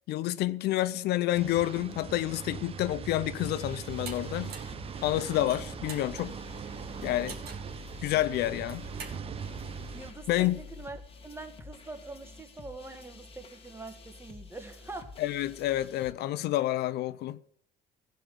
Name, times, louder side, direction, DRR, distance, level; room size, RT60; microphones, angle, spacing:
voice 1, 0.1-4.5 5.0-6.4 7.0-7.4 8.0-8.9 10.3-10.6 15.2-17.4, left 15 dB, 75° left, 0.6 m, -29 dB
sound 1, 1.3-10.1, right 7 dB, 35° right, 0.4 m, -41 dB
sound 2, 3.4-16.1, left 4 dB, 35° left, 1.4 m, -48 dB
sound 3, 4.0-4.2 4.5-4.8 5.3-6.1 7.3-7.7 8.5-9.2, right 5 dB, 65° right, 2.0 m, -43 dB
voice 2, 9.9-15.1, right 3 dB, 15° right, 1.4 m, -44 dB
15.0 x 5.1 x 7.6 m
cardioid pair, 110°, 17 cm